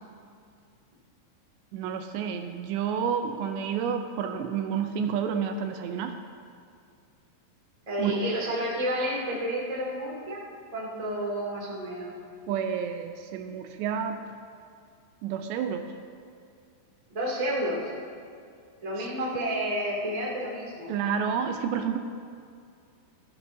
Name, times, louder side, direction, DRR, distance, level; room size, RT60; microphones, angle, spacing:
voice 1, 1.7-6.2 8.0-8.2 12.5-14.2 15.2-15.9 20.9-22.0, right 7 dB, 80° right, 6 dB, 2.7 m, -29 dB
voice 2, 7.8-10.4 10.7-12.1 17.1-17.9 18.8-20.9, right 1 dB, 15° right, -5 dB, 1.2 m, -30 dB
18.0 x 12.5 x 2.7 m, 2.3 s
omnidirectional pair, 5.2 m